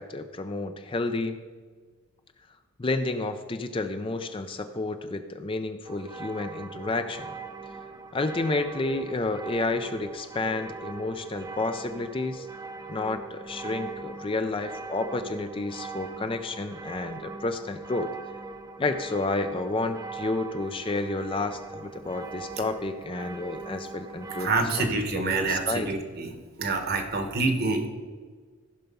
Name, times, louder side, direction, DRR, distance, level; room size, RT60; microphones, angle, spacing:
voice 1, 0.0-1.4 2.8-7.3 8.1-12.5 12.9-18.1 18.8-24.5 25.1-25.9, left 2 dB, 25° left, 8 dB, 0.4 m, -30 dB
sound 1, 5.8-24.6, right 3 dB, 15° right, 0.6 m, -41 dB
voice 2, 24.4-26.3 26.6-27.9, right 3 dB, 45° right, 6 dB, 1.2 m, -27 dB
14.5 x 5.7 x 5.4 m, 1.5 s
head